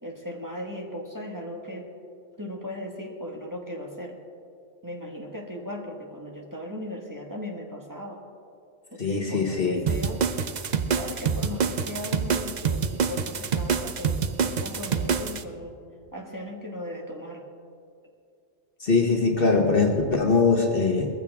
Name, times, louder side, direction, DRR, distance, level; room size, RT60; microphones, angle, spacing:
voice 1, 0.0-1.9 2.4-4.2 4.8-8.2 8.9-10.2 11.0-15.8 16.1-17.4, left 1 dB, 15° right, -1 dB, 1.6 m, -37 dB
voice 2, 9.0-9.8 18.8-21.1, left 4 dB, 45° left, 2 dB, 1.4 m, -22 dB
sound 1, 9.9-15.4, right 6 dB, 45° right, 0.6 m, -26 dB
20.5 x 14.5 x 3.6 m, 2.4 s
omnidirectional pair, 1.3 m